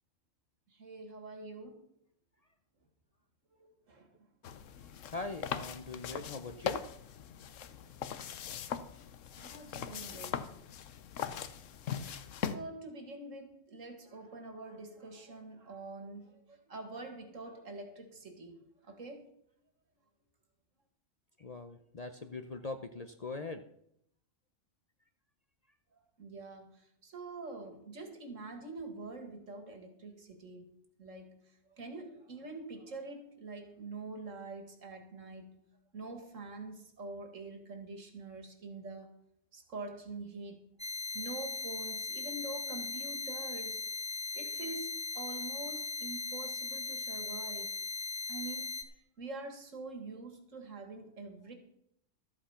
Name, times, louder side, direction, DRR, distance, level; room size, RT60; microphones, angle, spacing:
voice 1, 0.7-1.8 3.6-4.1 9.4-10.5 12.4-18.6 18.8-19.2 26.2-30.6 31.0-31.4 31.7-35.6 35.9-39.2 39.5-40.6 41.1-43.8 44.3-44.9 45.1-47.8 48.3-48.8 49.2-51.5, right 3 dB, 80° right, 6 dB, 2.3 m, -45 dB
sound 1, 4.4-12.6, left 8 dB, 75° left, 1.1 m, -40 dB
voice 2, 5.0-6.9 21.4-23.6, left 3 dB, 40° left, 8 dB, 0.6 m, -41 dB
sound 2, 40.8-48.8, left 4 dB, 15° left, 1.2 m, -38 dB
13.5 x 8.6 x 5.7 m, 0.72 s
omnidirectional pair, 1.3 m